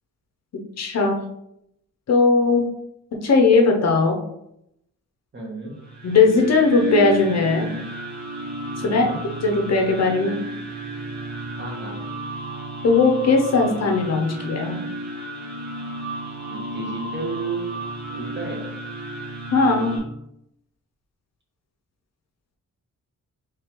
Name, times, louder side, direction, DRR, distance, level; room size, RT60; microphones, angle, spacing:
voice 1, 0.8-1.2 2.1-2.6 3.2-4.2 6.0-7.7 8.8-9.0 9.4-10.4 12.8-14.8 19.5-19.9, left 4 dB, 50° left, 2 dB, 0.6 m, -18 dB
voice 2, 5.3-5.8 8.8-9.2 11.6-12.1 16.5-17.8 18.1-18.7, right 4 dB, 35° right, -2 dB, 0.9 m, -33 dB
sound 1, 5.7-20.0, right 2 dB, 55° right, 1.0 m, -32 dB
3.5 x 3.2 x 2.9 m, 0.79 s
wide cardioid pair, 170°, 33 cm